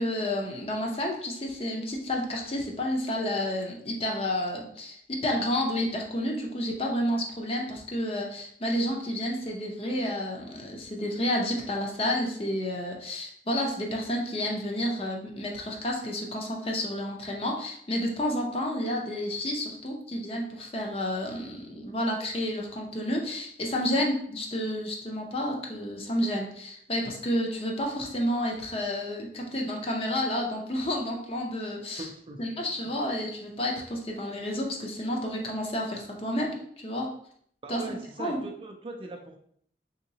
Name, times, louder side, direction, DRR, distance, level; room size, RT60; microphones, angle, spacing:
voice 1, 0.0-32.1 32.4-37.1 37.7-38.4, left 1 dB, 30° left, 0 dB, 0.5 m, -30 dB
voice 2, 32.0-32.4 37.6-39.4, right 2 dB, 30° right, 3 dB, 0.3 m, -40 dB
3.7 x 2.8 x 2.7 m, 0.65 s
head